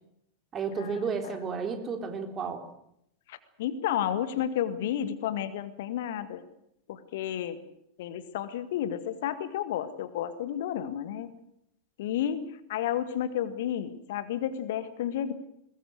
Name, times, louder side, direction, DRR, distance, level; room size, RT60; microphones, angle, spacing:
voice 1, 0.5-2.6, right 5 dB, 25° right, 6 dB, 3.7 m, -32 dB
voice 2, 3.3-6.4 6.9-7.6 8.0-11.3 12.0-15.3, left 10 dB, 55° left, 12 dB, 1.8 m, -31 dB
22.0 x 21.0 x 7.9 m, 0.76 s
figure-of-eight pair, 90°, 0 cm